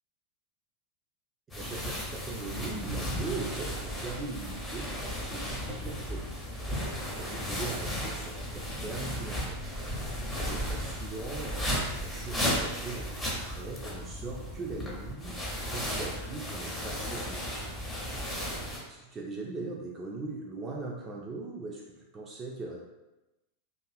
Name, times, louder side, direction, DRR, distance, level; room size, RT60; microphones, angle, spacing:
sound 1, 1.5-18.8, equal, 10° left, 0.7 m, -35 dB
voice 1, 1.6-4.9 5.3-6.3 7.1-9.6 10.4-11.7 12.0-15.4 15.7-17.7 18.9-22.8, right 3 dB, 20° right, -2 dB, 0.3 m, -40 dB
2.6 x 2.4 x 2.3 m, 1.0 s
figure-of-eight pair, 90°, 0 cm